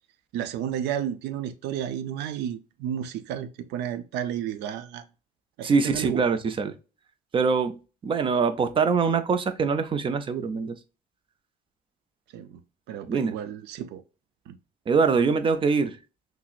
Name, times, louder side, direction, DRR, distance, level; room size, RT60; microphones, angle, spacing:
voice 1, 0.3-5.1 5.6-6.2 12.3-12.6 12.9-14.0 14.5-14.6, right 10 dB, 85° right, 0.5 m, -32 dB
voice 2, 5.6-6.8 7.3-10.8 13.1-13.4 14.9-16.0, right 5 dB, 30° right, 0.5 m, -24 dB
5.8 x 2.0 x 2.4 m
cardioid pair, 110°, 17 cm